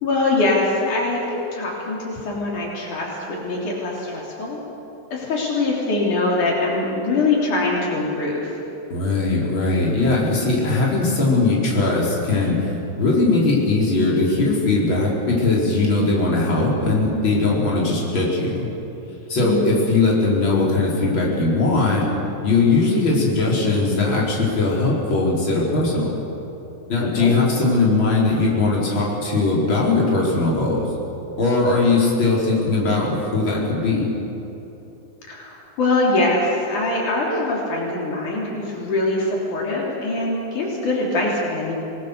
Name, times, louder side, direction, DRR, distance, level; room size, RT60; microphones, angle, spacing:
voice 1, 0.0-4.6 5.1-8.5 19.4-19.6 27.0-27.3 35.3-41.7, left 2 dB, 75° left, -3 dB, 4.8 m, -23 dB
voice 2, 8.9-12.6 13.0-18.7 19.3-22.1 22.4-26.1 26.9-30.9 31.4-34.0, left 3 dB, 40° left, -4 dB, 4.9 m, -19 dB
26.0 x 20.0 x 6.8 m, 3.0 s
omnidirectional pair, 3.5 m